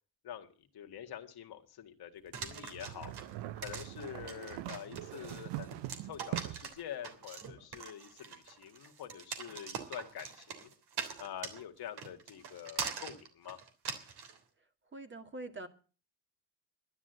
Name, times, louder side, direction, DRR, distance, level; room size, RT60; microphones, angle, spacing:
voice 1, 0.2-3.1 3.6-10.7 11.2-13.6, left 10 dB, 60° left, 1.9 m, -46 dB
sound 1, 2.3-14.4, right 6 dB, 65° right, 3.3 m, -42 dB
sound 2, 2.7-6.8, right 15 dB, 90° right, 1.0 m, -42 dB
voice 2, 14.9-15.7, right 2 dB, 25° right, 2.2 m, -44 dB
11.5 x 11.0 x 8.0 m
cardioid pair, 105°, 42 cm